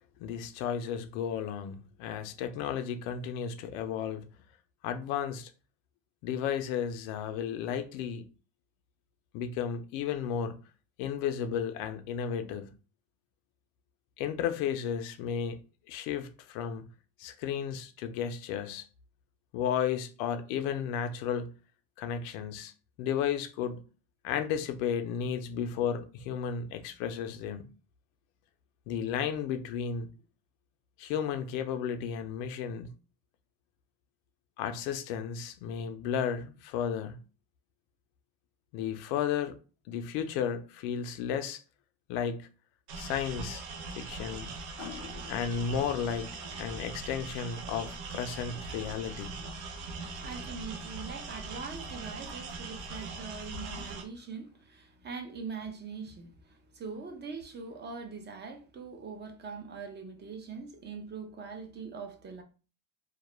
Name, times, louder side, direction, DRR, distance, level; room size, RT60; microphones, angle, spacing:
voice 1, 0.2-4.2 4.8-5.5 6.2-8.2 9.3-10.6 11.0-12.7 14.2-15.6 15.9-16.8 17.2-18.9 19.5-21.5 22.0-22.7 23.0-23.8 24.2-27.6 28.9-30.1 31.0-32.9 34.6-37.2 38.7-39.6 39.9-41.6 42.1-42.5 42.9-43.6 43.9-44.5 44.8-49.3, left 8 dB, 80° left, 0.5 m, -33 dB
sound 1, 42.9-54.0, right 3 dB, 70° right, 0.7 m, -41 dB
voice 2, 50.2-62.4, right 5 dB, 25° right, 0.4 m, -42 dB
2.3 x 2.1 x 3.0 m
supercardioid pair, 95°, 40 cm